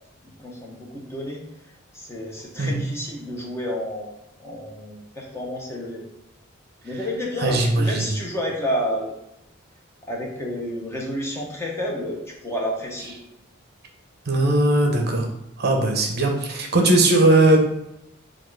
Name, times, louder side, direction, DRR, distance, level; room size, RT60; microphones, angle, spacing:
voice 1, 0.4-1.4 1.9-4.1 4.4-6.0 6.8-9.1 10.1-13.2, equal, 15° left, -2 dB, 0.7 m, -30 dB
voice 2, 7.4-8.1 14.3-15.3 15.6-17.7, right 2 dB, 50° right, 2 dB, 0.7 m, -19 dB
4.4 x 2.4 x 4.5 m, 0.84 s
head